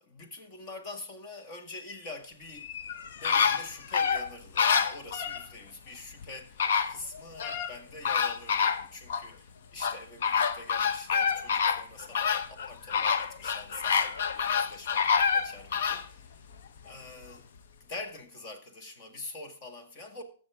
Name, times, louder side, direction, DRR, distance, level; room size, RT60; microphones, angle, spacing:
voice 1, 0.0-2.7 3.1-16.5 16.8-17.5 17.8-20.2, left 2 dB, 35° left, 2.0 m, -45 dB
sound 1, 2.6-5.4 6.2-6.3 6.6-7.7 8.0-9.3 9.8-16.1 16.5-16.6, left 6 dB, 65° left, 0.9 m, -27 dB
15.0 x 6.5 x 3.6 m
hypercardioid pair, 145°, 0 cm